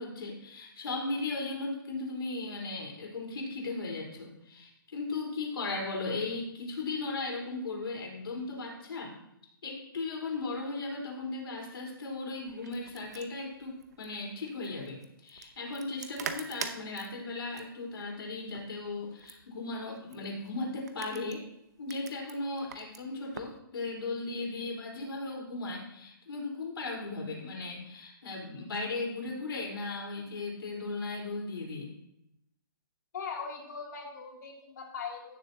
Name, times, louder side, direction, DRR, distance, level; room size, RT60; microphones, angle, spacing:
voice 1, 0.0-9.2 9.6-21.4 21.8-31.9, left 3 dB, 80° left, -1 dB, 4.0 m, -37 dB
sound 1, 12.5-23.6, right 7 dB, 45° right, 0.7 m, -46 dB
voice 2, 33.1-35.4, left 5 dB, 50° left, 0 dB, 2.6 m, -40 dB
16.0 x 7.0 x 2.8 m, 0.81 s
hypercardioid pair, 170°, 12 cm